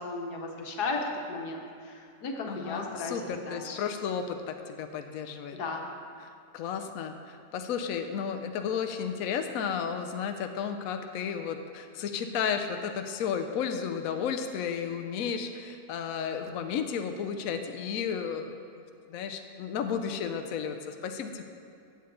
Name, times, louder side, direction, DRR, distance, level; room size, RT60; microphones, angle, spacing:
voice 1, 0.0-3.8 5.5-5.8, left 3 dB, 90° left, 1 dB, 1.8 m, -35 dB
voice 2, 2.5-5.6 6.5-18.5 19.1-21.4, left 7 dB, 70° left, 6 dB, 1.0 m, -33 dB
15.0 x 8.0 x 3.9 m, 2.5 s
omnidirectional pair, 1.7 m